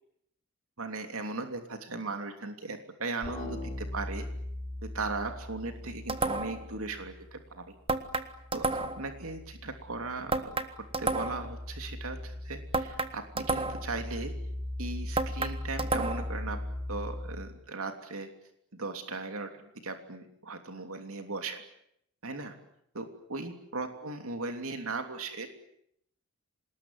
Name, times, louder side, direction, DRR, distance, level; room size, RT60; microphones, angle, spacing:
voice 1, 0.8-4.3 4.8-7.7 8.5-14.3 14.8-16.6 16.9-18.3 18.7-21.6 22.2-22.5 22.9-25.5, right 3 dB, 70° right, 6 dB, 3.1 m, -38 dB
sound 1, 3.2-7.6 7.9-17.5, left 1 dB, 20° left, 6.6 m, -40 dB
sound 2, 6.1-6.7 7.9-9.1 10.3-11.5 12.7-14.0 15.2-16.4, right 3 dB, 25° right, 1.7 m, -31 dB
27.0 x 20.5 x 9.6 m, 0.74 s
head